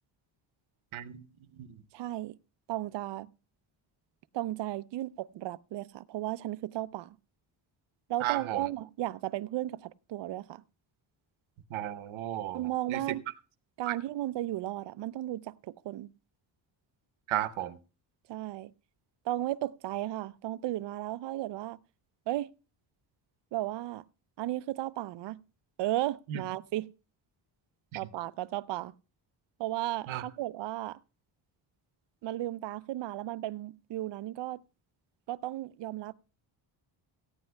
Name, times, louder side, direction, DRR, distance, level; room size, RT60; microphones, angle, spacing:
voice 1, 0.9-1.2 1.5-1.7 8.2-8.7 11.7-12.6 12.9-13.2 13.9-14.0 17.3-17.8 26.3-26.4 30.1-30.2, right 13 dB, 90° right, 0.9 m, -34 dB
voice 2, 1.9-2.4 2.7-3.3 4.3-7.2 8.1-10.6 12.5-13.2 13.8-16.1 18.3-18.7 19.3-21.8 22.3-22.5 23.5-24.0 24.4-25.4 25.8-26.9 27.9-28.9 29.6-31.0 32.2-34.6 35.3-36.1, right 15 dB, 65° right, 0.5 m, -34 dB
17.5 x 14.5 x 2.2 m
cardioid pair, 150°, 47 cm